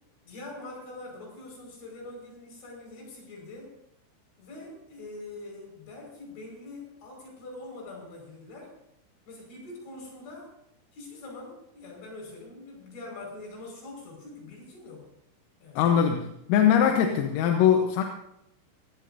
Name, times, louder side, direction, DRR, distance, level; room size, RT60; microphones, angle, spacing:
voice 1, 0.2-3.8 4.4-8.8 9.3-10.5 10.9-15.1 15.6-15.9, left 2 dB, 65° left, 0 dB, 7.7 m, -44 dB
voice 2, 15.8-18.0, left 8 dB, 85° left, 3 dB, 3.8 m, -22 dB
26.0 x 16.5 x 2.7 m, 0.80 s
omnidirectional pair, 5.8 m